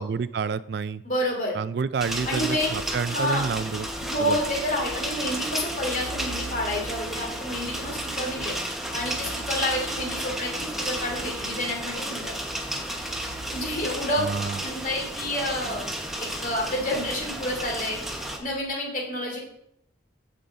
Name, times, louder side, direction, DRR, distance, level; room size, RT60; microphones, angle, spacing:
voice 1, 0.0-1.0 1.5-3.9 4.2-4.4 14.1-14.6, right 5 dB, 60° right, 16 dB, 0.3 m, -29 dB
voice 2, 1.0-1.6 2.2-2.8 3.1-3.5 4.0-8.5 8.9-12.3 13.5-14.2 14.6-15.8 16.2-18.0 18.4-19.4, left 1 dB, 45° left, -1 dB, 2.7 m, -29 dB
sound 1, 2.0-18.4, right 1 dB, ahead, 1.1 m, -33 dB
sound 2, 3.7-18.6, right 4 dB, 20° left, 1.3 m, -46 dB
14.5 x 5.5 x 3.8 m, 0.74 s
head